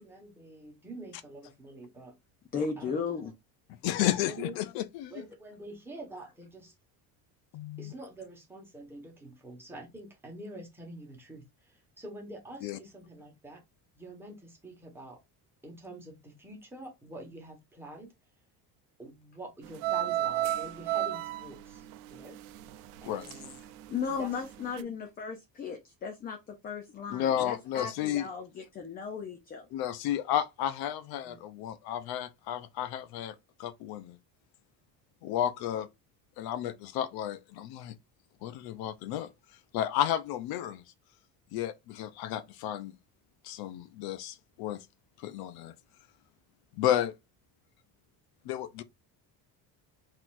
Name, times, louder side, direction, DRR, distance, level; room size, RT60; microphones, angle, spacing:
voice 1, 0.0-2.2 2.8-3.0 4.1-4.6 5.1-6.7 7.8-13.6 13.9-15.2 15.6-18.1 19.0-22.4 23.0-23.6 24.1-24.3 24.8-24.9 31.2-31.4, right 1 dB, 5° right, 1.3 m, -46 dB
voice 2, 2.5-3.3 23.9-29.7, left 6 dB, 25° left, 0.5 m, -36 dB
voice 3, 3.8-5.1 7.5-7.9 12.6-12.8 23.1-23.3 27.1-28.3 29.7-34.2 35.2-35.9 36.4-37.9 38.4-39.3 39.7-40.8 41.5-42.9 43.4-44.9 45.2-45.7 46.7-47.1 48.4-48.8, left 11 dB, 70° left, 0.6 m, -32 dB
sound 1, 19.7-23.6 23.9-24.4 24.8-24.9, right 13 dB, 75° right, 0.7 m, -32 dB
4.4 x 4.1 x 2.5 m
cardioid pair, 175°, 38 cm